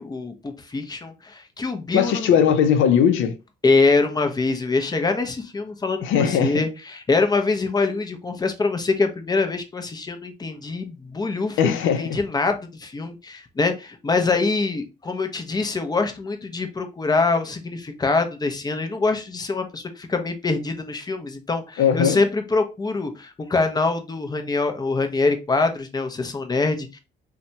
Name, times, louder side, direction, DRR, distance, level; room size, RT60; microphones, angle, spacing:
voice 1, 0.0-2.3 3.6-27.0, left 3 dB, 20° left, 0.5 m, -24 dB
voice 2, 1.9-3.4 6.0-6.7 11.6-12.2 21.8-22.2, left 8 dB, 80° left, 0.5 m, -19 dB
2.8 x 2.2 x 2.7 m
cardioid pair, 90°, 20 cm